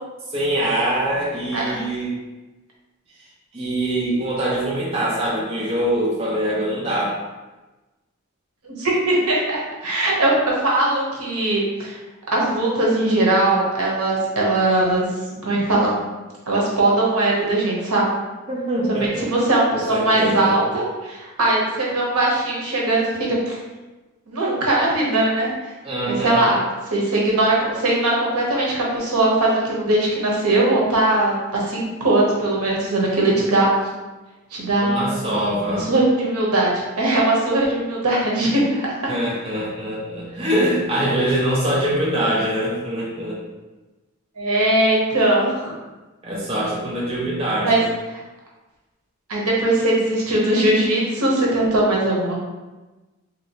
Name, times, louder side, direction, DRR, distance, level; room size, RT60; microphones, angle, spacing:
voice 1, 0.3-2.1 3.5-7.2 18.5-19.3 19.7-20.6 25.8-26.5 34.8-35.9 39.1-43.4 46.2-47.8, right 1 dB, 25° right, -5 dB, 0.6 m, -23 dB
voice 2, 8.6-12.0 12.3-15.1 15.4-16.0 16.5-18.1 18.9-23.6 24.3-25.5 26.1-26.6 26.9-33.7 34.5-35.2 35.7-36.7 37.0-39.1 44.4-45.8 47.6-47.8 48.1-48.2 49.3-52.4, right 2 dB, 80° right, -4 dB, 0.9 m, -20 dB
3.0 x 2.8 x 2.8 m, 1.1 s
head